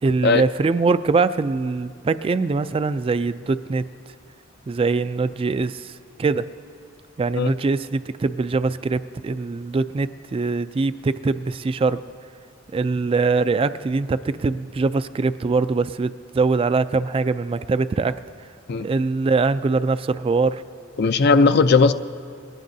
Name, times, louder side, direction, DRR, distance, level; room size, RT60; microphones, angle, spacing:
voice 1, 0.0-3.8 4.7-5.9 6.2-6.5 7.2-12.0 12.7-18.2 18.8-20.6, right 4 dB, 25° right, 13 dB, 0.3 m, -22 dB
voice 2, 21.0-21.9, left 4 dB, 55° left, 10 dB, 0.5 m, -17 dB
22.5 x 18.5 x 2.7 m, 2.3 s
head